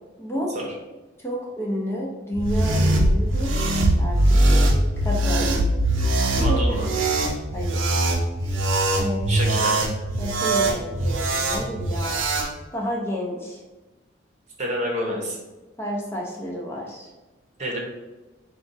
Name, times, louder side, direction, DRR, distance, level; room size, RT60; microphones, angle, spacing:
voice 1, 0.2-0.5 1.2-3.6 4.0-4.6 5.0-5.5 6.5-6.6 7.5-7.8 8.9-9.6 10.2-12.2 12.7-13.6 15.8-17.1, equal, 15° left, -3 dB, 0.6 m, -30 dB
sound 1, 2.3-12.5, right 1 dB, 90° right, 0.7 m, -21 dB
voice 2, 6.4-6.9 9.3-9.8 14.6-15.4 17.6-17.8, equal, 35° right, -1 dB, 0.8 m, -28 dB
4.8 x 2.4 x 3.9 m, 1.2 s
head